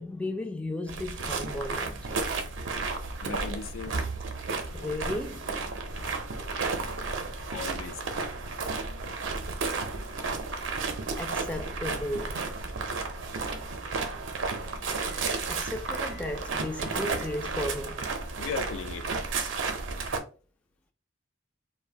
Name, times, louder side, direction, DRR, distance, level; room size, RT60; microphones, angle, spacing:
voice 1, 0.0-2.3 4.7-5.7 11.1-12.4 15.5-18.1, left 1 dB, 5° left, 0.3 m, -35 dB
sound 1, 0.9-20.2, right 4 dB, 70° right, 0.5 m, -33 dB
voice 2, 3.2-4.0 7.5-8.0 18.4-19.1, left 6 dB, 85° left, 0.3 m, -37 dB
sound 2, 4.5-17.8, left 1 dB, 60° left, 0.9 m, -48 dB
2.5 x 2.1 x 3.2 m
head